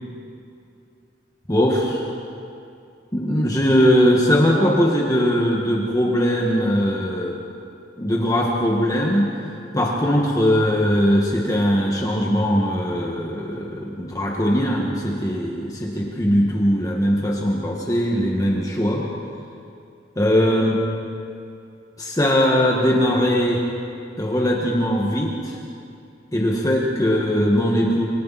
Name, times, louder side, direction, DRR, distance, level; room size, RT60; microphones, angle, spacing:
voice 1, 1.5-2.1 3.1-7.4 8.0-9.3 9.7-19.0 20.2-20.8 22.0-23.6 24.2-25.6 26.3-28.1, equal, 20° left, -2 dB, 1.8 m, -20 dB
27.0 x 26.0 x 4.3 m, 2.5 s
head